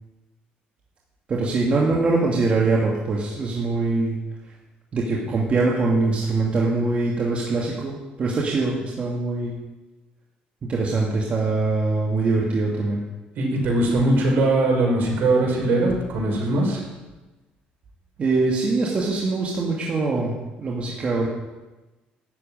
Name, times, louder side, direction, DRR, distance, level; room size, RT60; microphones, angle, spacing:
voice 1, 1.3-4.2 4.9-9.5 10.7-13.0 18.2-21.3, right 3 dB, 35° right, -3 dB, 2.3 m, -23 dB
voice 2, 13.4-16.8, right 2 dB, 60° right, -1 dB, 5.7 m, -21 dB
13.0 x 7.6 x 9.2 m, 1.1 s
cardioid pair, 110°, 3 cm